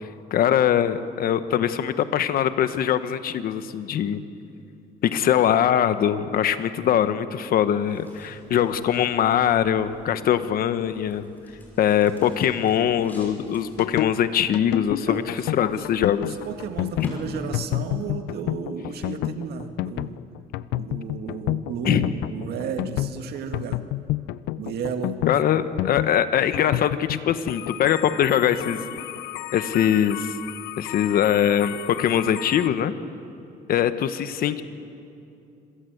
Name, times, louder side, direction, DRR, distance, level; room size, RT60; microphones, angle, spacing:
voice 1, 0.3-4.2 5.0-11.2 11.8-16.5 17.0-17.1 21.9-22.1 25.3-28.8 29.5-30.3 30.8-32.9 33.7-34.6, left 9 dB, 60° left, 11 dB, 1.2 m, -22 dB
sound 1, 7.7-18.0, equal, 10° left, 6.3 m, -45 dB
sound 2, 13.6-32.7, left 16 dB, 90° left, 0.5 m, -30 dB
voice 2, 15.1-15.4 15.7-20.2 20.7-23.8 24.6-25.4, right 6 dB, 70° right, 6 dB, 2.0 m, -33 dB
26.0 x 17.0 x 8.0 m, 2.7 s
cardioid pair, 110°, 17 cm